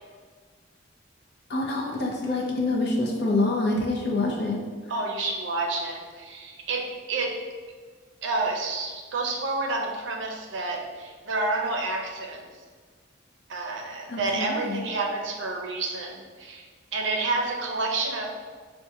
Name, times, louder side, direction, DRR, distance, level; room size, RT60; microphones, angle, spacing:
voice 1, 1.5-4.6 14.1-14.8, left 2 dB, 55° left, -1 dB, 0.6 m, -26 dB
voice 2, 4.9-7.4 8.2-12.5 13.5-16.7 16.9-18.3, right 3 dB, 70° right, 1 dB, 0.5 m, -29 dB
4.5 x 2.1 x 2.7 m, 1.5 s
head